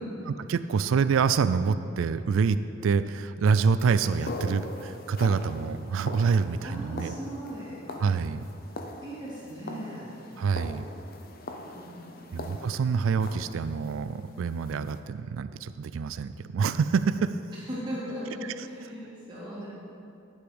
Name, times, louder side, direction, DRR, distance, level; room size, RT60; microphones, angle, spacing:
voice 1, 0.3-7.2 8.0-8.4 10.4-10.9 12.3-17.3, right 5 dB, 90° right, 13 dB, 0.3 m, -26 dB
sound 1, 3.8-15.0, left 2 dB, 50° left, 0.7 m, -42 dB
voice 2, 6.6-7.8 9.0-10.1 11.7-12.5 17.5-19.7, equal, 25° right, -9 dB, 2.6 m, -38 dB
9.8 x 8.1 x 5.0 m, 2.6 s
head